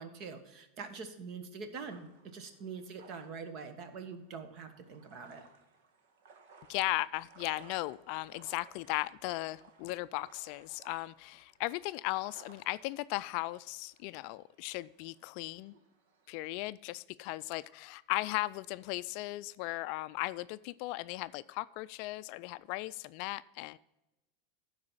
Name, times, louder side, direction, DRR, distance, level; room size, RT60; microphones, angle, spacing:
voice 1, 0.0-5.4, right 5 dB, 45° right, 8 dB, 1.4 m, -44 dB
sound 1, 1.7-16.4, right 4 dB, 70° right, 1.6 m, -61 dB
voice 2, 6.7-15.7 16.3-23.8, left 19 dB, 55° left, 16 dB, 0.3 m, -37 dB
12.0 x 4.8 x 5.6 m, 0.96 s
supercardioid pair, 135°, 0 cm